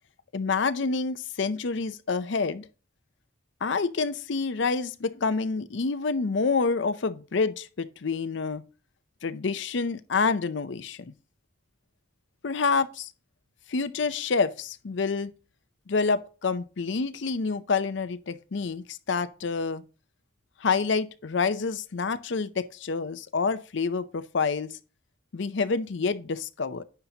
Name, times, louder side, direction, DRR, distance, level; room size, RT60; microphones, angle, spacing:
voice 1, 0.3-2.7 3.6-8.6 9.2-11.1 12.4-13.1 13.7-15.3 15.9-19.8 20.6-24.7 25.3-26.8, left 4 dB, 60° left, 0.5 m, -28 dB
9.7 x 5.7 x 2.8 m
head